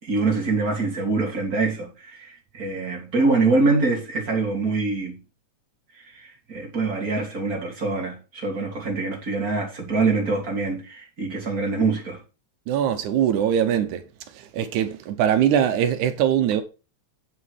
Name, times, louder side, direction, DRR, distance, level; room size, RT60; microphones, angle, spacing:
voice 1, 0.0-5.2 6.1-12.2, right 3 dB, 30° right, 3.2 m, -24 dB
voice 2, 12.7-14.0 14.4-16.6, right 9 dB, 90° right, 2.4 m, -22 dB
9.0 x 6.3 x 4.7 m
omnidirectional pair, 3.3 m